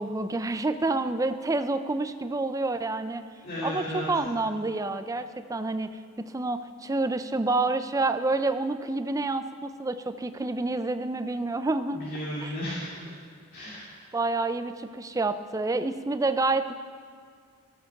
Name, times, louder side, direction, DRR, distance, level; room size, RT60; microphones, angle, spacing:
voice 1, 0.0-3.2 3.6-5.9 6.2-12.0 12.4-12.6 14.1-16.7, right 2 dB, 15° right, 11 dB, 0.4 m, -28 dB
voice 2, 3.4-4.1 11.9-13.1 13.5-13.9, equal, 45° left, -10 dB, 2.5 m, -34 dB
14.0 x 7.0 x 5.9 m, 2.1 s
head